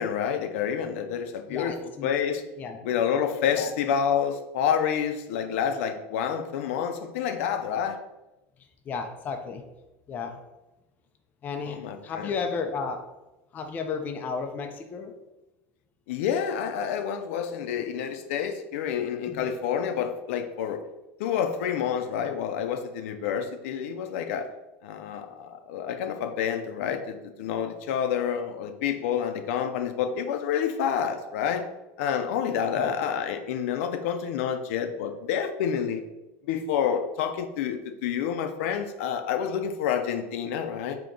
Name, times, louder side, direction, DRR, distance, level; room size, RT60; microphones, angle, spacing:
voice 1, 0.0-2.4 2.8-8.0 11.6-12.3 16.1-20.8 21.2-24.5 24.8-31.7 32.0-36.0 36.5-41.0, left 8 dB, 85° left, 7 dB, 0.4 m, -28 dB
voice 2, 1.5-2.1 2.6-2.8 3.5-3.7 8.9-9.6 10.1-10.4 11.4-13.1 13.5-15.1 19.3-19.5 32.7-32.9, left 5 dB, 25° left, 5 dB, 0.4 m, -33 dB
3.6 x 2.8 x 3.8 m, 0.99 s
cardioid pair, 160°, 7 cm